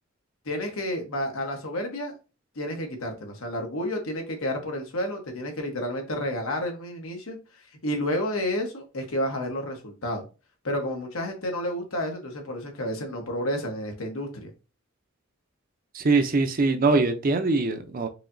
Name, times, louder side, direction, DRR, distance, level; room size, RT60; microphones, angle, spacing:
voice 1, 0.4-2.1 2.5-7.4 7.8-10.2 10.6-14.5, left 1 dB, 85° left, 3 dB, 1.1 m, -30 dB
voice 2, 15.9-18.1, right 3 dB, 40° right, 8 dB, 0.5 m, -22 dB
4.9 x 2.8 x 2.6 m, 0.31 s
head